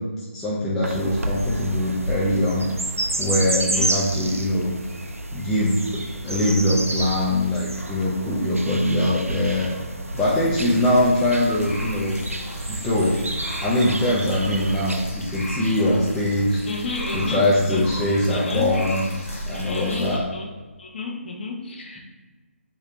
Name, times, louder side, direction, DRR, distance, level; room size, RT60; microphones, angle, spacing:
voice 1, 0.0-2.7 3.2-4.7 5.3-9.7 10.1-12.2 12.7-13.2 13.6-16.6 17.1-19.0 19.5-20.2, left 1 dB, 5° left, -8 dB, 0.3 m, -22 dB
sound 1, 0.8-15.0, right 1 dB, 90° right, 0.4 m, -30 dB
sound 2, 10.1-20.2, equal, 85° left, 1.0 m, -34 dB
voice 2, 16.7-17.8 18.3-18.7 19.7-20.5 20.8-22.0, left 3 dB, 45° left, 0 dB, 0.7 m, -31 dB
2.7 x 2.7 x 3.4 m, 1.2 s
figure-of-eight pair, 150°, 7 cm